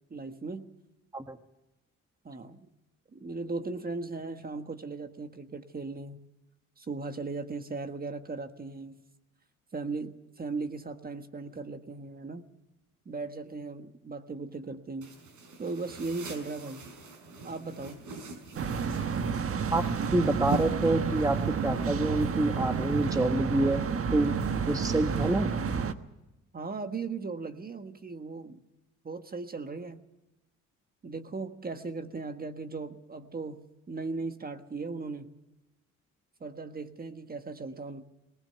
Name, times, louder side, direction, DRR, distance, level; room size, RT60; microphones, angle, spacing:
voice 1, 0.1-0.7 2.2-2.6 3.1-6.2 6.8-9.0 9.7-12.5 13.0-15.1 15.6-16.8 17.4-18.1 26.5-28.6 29.0-30.0 31.0-35.3 36.4-38.0, right 3 dB, 30° right, 8 dB, 1.5 m, -37 dB
sound 1, 15.0-23.1, right 3 dB, 85° right, 5.4 m, -42 dB
sound 2, 18.5-25.9, right 6 dB, 50° right, 1.3 m, -30 dB
voice 2, 20.1-21.4 21.6-23.8 24.1-24.4 24.7-25.5, right 2 dB, 10° right, 7 dB, 1.3 m, -27 dB
21.0 x 19.5 x 6.9 m, 0.99 s
cardioid pair, 90°, 30 cm